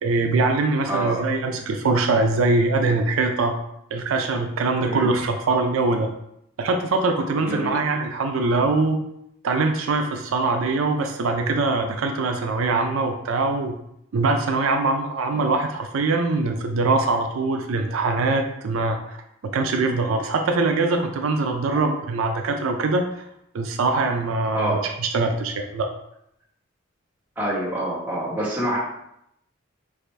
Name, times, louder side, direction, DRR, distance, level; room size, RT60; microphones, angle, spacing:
voice 1, 0.0-3.5 3.9-6.1 6.6-9.0 9.4-13.7 14.1-19.2 19.4-23.3 23.5-25.9, right 3 dB, 80° right, 4 dB, 0.4 m, -23 dB
voice 2, 7.4-7.8 15.3-15.5 24.5-24.8 27.4-28.8, right 1 dB, 10° right, -8 dB, 1.3 m, -26 dB
4.8 x 2.4 x 3.3 m, 0.78 s
head